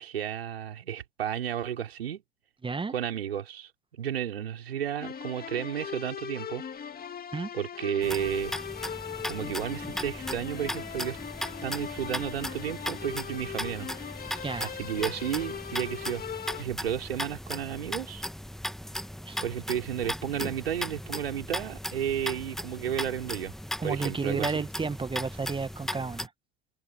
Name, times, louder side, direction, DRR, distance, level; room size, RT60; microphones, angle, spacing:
voice 1, 0.0-2.2 2.9-6.6 7.5-8.6 9.3-11.2 11.6-13.9 14.6-16.2 16.6-18.2 19.4-23.5 23.8-24.6, right 9 dB, 80° right, 5.5 m, -32 dB
voice 2, 2.6-2.9 7.3-7.5 14.4-14.7 19.3-19.4 23.8-26.3, right 4 dB, 15° right, 1.6 m, -32 dB
sound 1, 5.0-16.6, left 7 dB, 30° left, 2.7 m, -39 dB
sound 2, 8.0-26.3, equal, ahead, 1.4 m, -37 dB
figure-of-eight pair, 70°, 30 cm